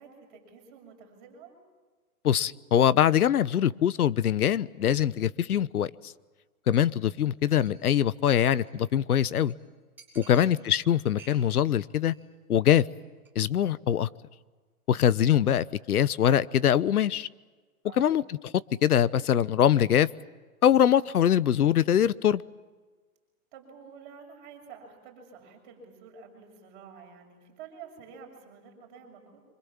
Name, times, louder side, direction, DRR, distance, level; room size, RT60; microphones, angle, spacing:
voice 1, 0.0-1.6 10.1-10.5 17.8-18.1 23.5-29.4, right 6 dB, 35° right, 2 dB, 6.8 m, -49 dB
voice 2, 2.2-6.1 6.7-9.5 10.2-12.1 12.5-12.8 13.3-14.1 14.9-17.3 18.0-18.5 18.8-20.1 20.6-22.4, left 10 dB, 85° left, 18 dB, 1.0 m, -23 dB
Chink clink, 6.7-6.9 7.2-7.3 7.5-8.8 9.2-9.3 9.5-9.6 10.0-10.8 11.1-11.7 11.9-12.2 12.5-12.8 13.2-13.3, right 4 dB, 5° right, 6.4 m, -54 dB
27.0 x 26.0 x 7.3 m, 1.4 s
hypercardioid pair, 160°, 44 cm